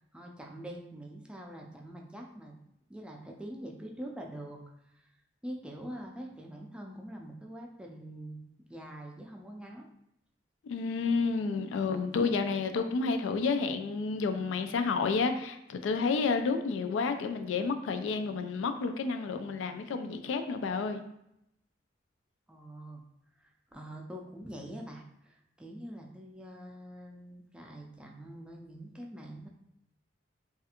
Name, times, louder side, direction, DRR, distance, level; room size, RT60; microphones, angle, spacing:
voice 1, 0.1-2.6 2.9-5.1 5.4-8.4 8.7-9.9 22.5-23.0 23.4-29.5, right 1 dB, 5° right, 0 dB, 0.4 m, -44 dB
voice 2, 10.7-21.0, left 4 dB, 85° left, 8 dB, 0.3 m, -30 dB
3.2 x 2.4 x 2.8 m, 0.80 s
head